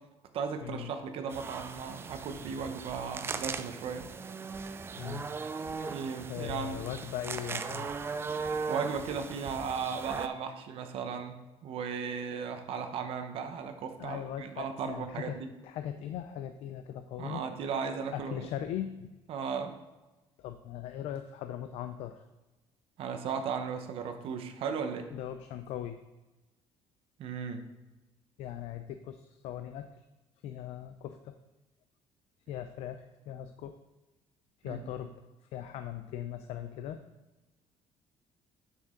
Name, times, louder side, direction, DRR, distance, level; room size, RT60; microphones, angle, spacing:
voice 1, 0.3-4.1 5.9-6.8 8.7-15.5 17.2-18.5 19.3-19.8 23.0-25.1 27.2-27.6 34.6-34.9, right 6 dB, 60° right, 7 dB, 0.9 m, -36 dB
sound 1, 1.3-10.3, right 5 dB, 20° right, 0.4 m, -38 dB
voice 2, 5.0-5.3 6.3-7.9 14.0-17.5 18.1-19.2 20.4-22.2 25.1-26.0 28.4-29.9 30.4-31.3 32.5-33.7 34.6-35.1 35.5-37.0, left 10 dB, 70° left, 9 dB, 0.5 m, -39 dB
9.0 x 6.2 x 3.7 m, 1.1 s
cardioid pair, 150°, 11 cm